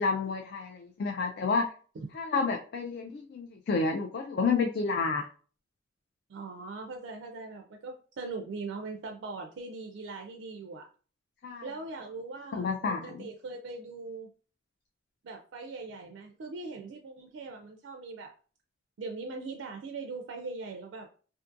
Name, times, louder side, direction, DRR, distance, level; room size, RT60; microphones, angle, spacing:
voice 1, 0.0-1.6 2.1-5.3 11.4-11.7 12.5-13.3, left 4 dB, 55° left, 3 dB, 0.3 m, -30 dB
voice 2, 6.3-10.9 11.6-14.3 15.2-18.3 19.0-21.1, right 3 dB, 75° right, 3 dB, 0.3 m, -40 dB
2.5 x 2.5 x 2.4 m, 0.40 s
head